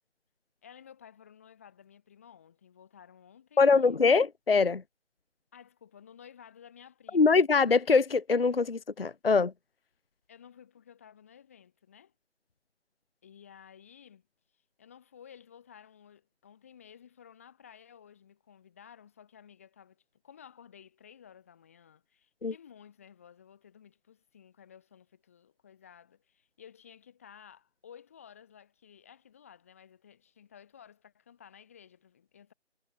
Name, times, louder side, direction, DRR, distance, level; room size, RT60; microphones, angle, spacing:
voice 1, 0.6-4.0 5.5-7.4 10.3-12.1 13.2-14.2 14.8-32.5, left 8 dB, 10° left, 3.3 m, -55 dB
voice 2, 3.6-4.8 7.1-9.5 22.4-22.5, left 4 dB, 55° left, 0.5 m, -23 dB
figure-of-eight pair, 165°, 36 cm